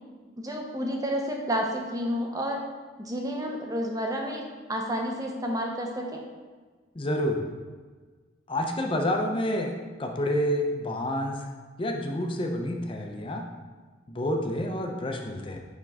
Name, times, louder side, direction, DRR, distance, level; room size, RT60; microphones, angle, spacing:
voice 1, 0.4-2.6 3.0-4.4 4.7-6.2, equal, 20° right, 1 dB, 0.7 m, -30 dB
voice 2, 6.9-7.4 8.5-9.7 10.0-11.4 11.8-13.4 14.1-15.6, left 1 dB, 25° left, 2 dB, 0.6 m, -28 dB
5.8 x 5.2 x 3.5 m, 1.4 s
head